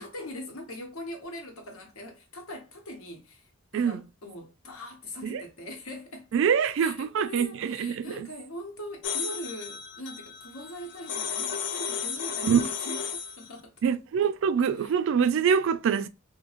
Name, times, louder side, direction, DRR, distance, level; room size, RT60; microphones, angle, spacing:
voice 1, 0.0-6.3 6.8-13.7 14.7-14.9, left 1 dB, 85° left, 1.0 m, -41 dB
voice 2, 6.3-8.3 12.4-12.6 13.8-16.1, right 7 dB, 65° right, 0.3 m, -25 dB
sound 1, 9.0-13.5, left 7 dB, 55° left, 0.4 m, -34 dB
2.9 x 2.7 x 2.4 m
head